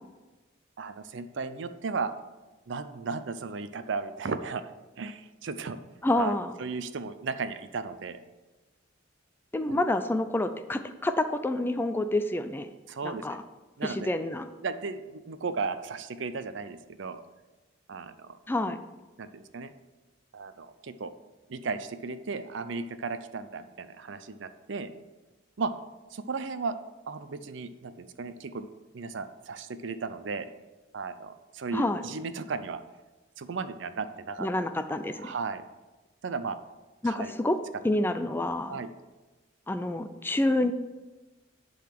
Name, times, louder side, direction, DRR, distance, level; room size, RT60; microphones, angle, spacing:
voice 1, 0.8-2.1 2.7-4.6 5.0-5.8 6.1-8.2 9.7-9.8 12.9-13.4 13.8-14.1 14.6-17.2 17.9-18.4 19.2-19.7 20.3-21.1 21.5-24.9 25.6-25.7 26.1-26.8 27.1-28.7 28.9-30.5 30.9-32.8 33.4-34.5 35.2-35.6 36.2-36.6 37.0-37.3 38.7-38.9, right 4 dB, 65° right, 11 dB, 0.5 m, -35 dB
voice 2, 6.0-6.5 9.5-12.7 13.0-13.4 13.8-14.5 18.5-18.8 31.7-32.0 34.4-35.3 37.0-37.6 37.8-38.8 39.7-40.7, left 1 dB, 10° left, 9 dB, 0.3 m, -28 dB
10.5 x 3.9 x 5.9 m, 1.2 s
head